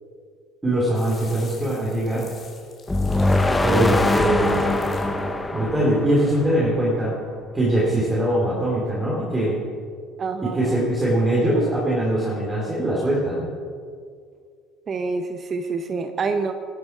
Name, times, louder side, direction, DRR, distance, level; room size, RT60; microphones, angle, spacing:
voice 1, 0.6-2.2 3.6-4.7 5.5-7.1 7.5-9.6 10.4-13.4, right 1 dB, 15° right, -6 dB, 3.5 m, -22 dB
sound 1, 0.9-6.1, left 4 dB, 40° left, 3.1 m, -47 dB
sound 2, 2.9-7.0, left 2 dB, 15° left, 1.0 m, -22 dB
voice 2, 10.2-10.9 14.9-16.5, right 4 dB, 40° right, 7 dB, 0.8 m, -27 dB
12.5 x 10.5 x 4.6 m, 2.2 s
supercardioid pair, 85°, 0 cm